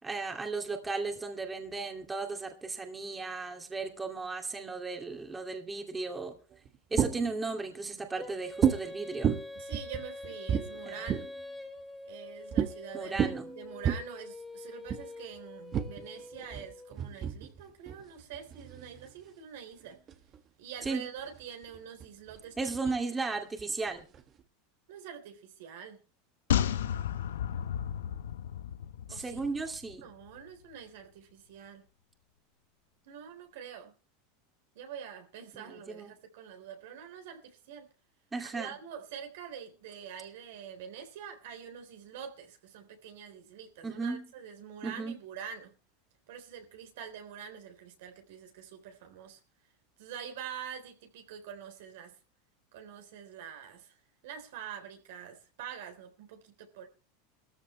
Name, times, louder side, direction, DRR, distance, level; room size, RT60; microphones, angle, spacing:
voice 1, 0.0-6.4 6.9-9.4 10.8-11.0 12.9-13.5 20.8-21.1 22.6-24.0 29.1-30.1 35.5-36.1 38.3-38.7 43.8-44.3 44.8-45.2, right 3 dB, 15° right, 2.5 m, -35 dB
sound 1, 6.5-7.4 8.6-8.9 9.2-11.4 12.5-12.7 13.0-14.0 14.9-15.0 15.7-19.1 19.8-20.4 20.8-20.9 21.2-23.0 23.6-24.4, right 8 dB, 35° right, 1.6 m, -32 dB
Female singing, 8.2-17.0, left 2 dB, 10° left, 3.3 m, -45 dB
voice 2, 9.5-11.3 12.0-20.0 20.6-22.7 24.9-26.0 29.1-29.5 30.0-31.8 33.0-33.9 34.8-37.9 38.4-45.7 46.3-49.4 50.0-52.2 52.7-54.0 54.2-56.9, right 8 dB, 75° right, 3.6 m, -45 dB
sound 2, 26.5-29.9 30.2-30.3, left 9 dB, 85° left, 0.9 m, -32 dB
17.5 x 14.0 x 3.2 m
hypercardioid pair, 105°, 0 cm